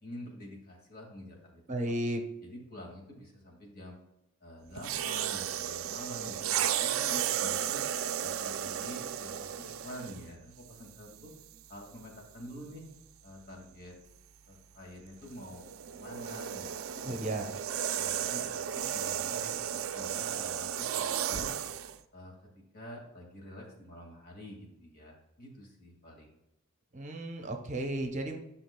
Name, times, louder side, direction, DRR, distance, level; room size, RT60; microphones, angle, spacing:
voice 1, 0.0-1.6 2.4-4.0 4.4-7.8 8.2-11.3 11.7-12.9 13.2-14.0 14.5-17.4 18.0-21.5 22.1-26.3, equal, 45° left, -1 dB, 2.1 m, -47 dB
voice 2, 1.7-2.2 17.1-17.5 26.9-28.4, right 1 dB, 35° right, 4 dB, 0.8 m, -34 dB
sound 1, 4.8-10.3 11.1-11.3 15.3-22.0, right 10 dB, 65° right, 0.4 m, -34 dB
11.0 x 6.0 x 2.3 m, 0.91 s
head